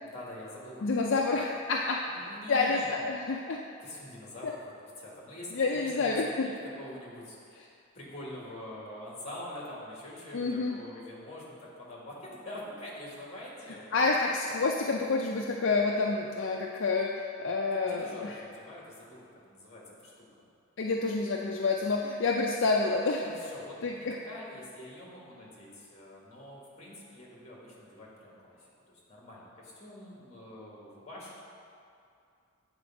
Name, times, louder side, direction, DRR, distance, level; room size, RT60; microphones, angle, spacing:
voice 1, 0.0-1.3 2.1-3.1 3.8-4.7 5.0-13.9 17.7-20.5 23.2-31.4, left 1 dB, 30° left, -4 dB, 1.6 m, -45 dB
voice 2, 0.8-2.0 2.5-3.6 4.4-4.5 5.5-6.5 10.3-10.8 13.9-18.4 20.8-23.2 23.8-24.1, left 3 dB, 55° left, 0 dB, 0.4 m, -28 dB
7.9 x 4.2 x 5.9 m, 2.5 s
head